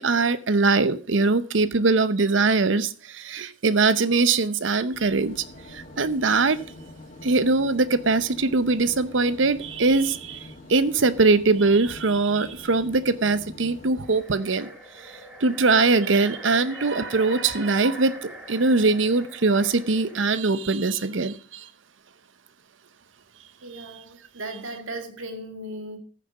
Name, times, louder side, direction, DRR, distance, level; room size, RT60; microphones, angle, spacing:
voice 1, 0.0-5.3 5.7-6.6 7.2-14.7 15.4-21.7, right 3 dB, 75° right, 0.8 m, -22 dB
sound 1, 4.9-13.9, left 1 dB, 40° left, 2.2 m, -45 dB
sound 2, 13.9-20.4, equal, 10° right, 3.3 m, -42 dB
voice 2, 23.6-26.0, right 1 dB, 90° right, 2.2 m, -36 dB
14.0 x 6.7 x 5.1 m
head